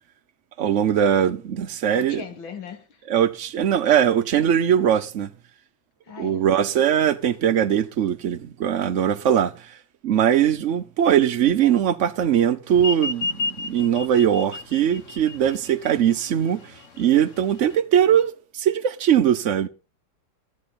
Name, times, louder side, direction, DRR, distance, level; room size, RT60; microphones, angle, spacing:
voice 1, 0.6-2.2 3.1-5.3 6.2-9.7 10.0-16.7 17.0-19.7, right 9 dB, 65° right, 0.7 m, -21 dB
voice 2, 1.9-3.0 6.1-6.5, left 7 dB, 80° left, 2.3 m, -38 dB
sound 1, 12.8-17.8, left 3 dB, 45° left, 1.4 m, -32 dB
14.0 x 11.0 x 4.2 m
omnidirectional pair, 2.1 m